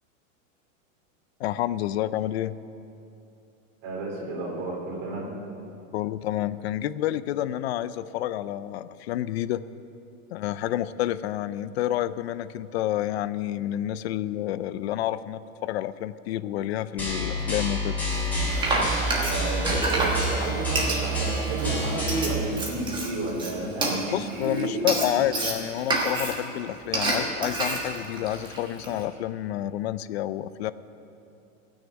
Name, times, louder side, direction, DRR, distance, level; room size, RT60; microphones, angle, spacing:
voice 1, 1.4-2.6 5.9-9.6 10.3-18.0 24.1-30.7, left 13 dB, 50° left, 15 dB, 0.4 m, -29 dB
voice 2, 3.8-5.3 10.6-10.7 19.3-25.2, right 2 dB, 35° right, -2 dB, 3.5 m, -31 dB
sound 1, 17.0-22.3, right 1 dB, 5° left, 3.2 m, -28 dB
Frying (food), 18.1-29.0, right 2 dB, 10° right, 1.3 m, -29 dB
17.0 x 6.5 x 8.1 m, 2.7 s
supercardioid pair, 165°, 41 cm